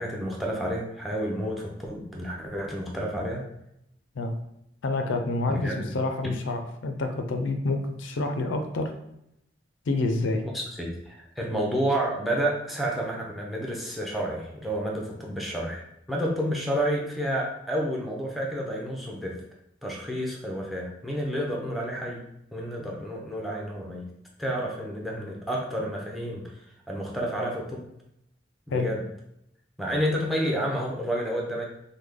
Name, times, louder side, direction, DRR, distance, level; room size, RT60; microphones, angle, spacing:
voice 1, 0.0-3.4 5.5-6.0 10.4-15.8 16.1-19.4 19.8-22.2 22.5-24.1 24.4-26.6 26.9-27.8 28.7-29.0 29.8-31.6, equal, ahead, -1 dB, 0.5 m, -30 dB
voice 2, 4.8-8.9 9.9-10.4 28.7-28.9, left 2 dB, 80° left, 6 dB, 0.4 m, -28 dB
3.2 x 2.1 x 3.5 m, 0.79 s
head